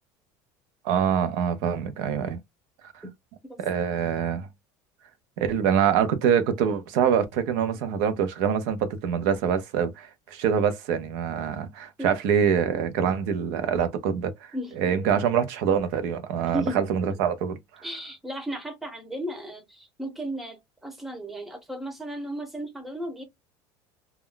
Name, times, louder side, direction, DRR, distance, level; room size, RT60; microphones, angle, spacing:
voice 1, 0.8-2.4 3.6-4.5 5.4-14.5 14.8-17.6, right 7 dB, 70° right, 0.6 m, -25 dB
voice 2, 14.5-15.1 16.5-16.8 17.1-17.2 17.8-23.2, right 1 dB, 5° right, 0.5 m, -35 dB
2.2 x 2.1 x 3.7 m
cardioid pair, 175°, 9 cm